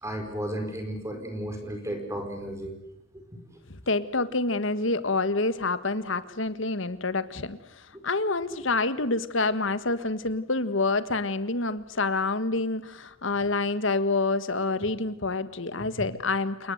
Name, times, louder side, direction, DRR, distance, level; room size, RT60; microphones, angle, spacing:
voice 1, 0.0-2.7 3.1-3.2 3.5-3.6 16.0-16.1, right 1 dB, 15° right, 5 dB, 4.6 m, -34 dB
voice 2, 3.7-16.7, left 3 dB, 70° left, 14 dB, 1.6 m, -27 dB
29.5 x 19.5 x 8.0 m, 0.77 s
head